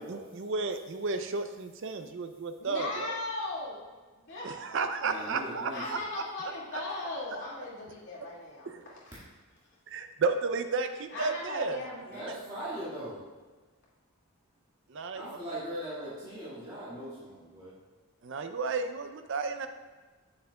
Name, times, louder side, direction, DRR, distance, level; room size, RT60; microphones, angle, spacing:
voice 1, 0.1-3.2 4.4-6.2 8.7-8.8 9.9-11.8 14.9-15.4 18.2-19.7, right 4 dB, 55° right, 8 dB, 0.4 m, -33 dB
voice 2, 2.6-3.8 4.2-4.5 5.1-5.2 5.7-9.2 11.1-12.8, left 2 dB, 55° left, -7 dB, 2.2 m, -38 dB
voice 3, 5.0-5.8 12.1-13.2 15.2-17.7, right 1 dB, 20° right, -11 dB, 1.7 m, -40 dB
8.2 x 6.4 x 2.3 m, 1.3 s
head